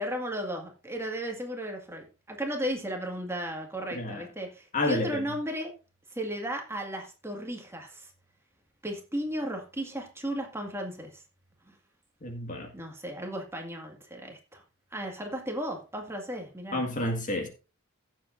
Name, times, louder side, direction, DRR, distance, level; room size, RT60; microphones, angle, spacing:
voice 1, 0.0-5.7 6.1-8.1 8.8-11.2 11.7-11.8 12.7-14.6 14.9-16.9, equal, 15° right, 2.0 m, -35 dB
voice 2, 3.9-4.3 4.7-5.2 12.2-12.7 16.7-17.5, left 1 dB, 40° left, 1.8 m, -30 dB
16.0 x 7.4 x 2.6 m
head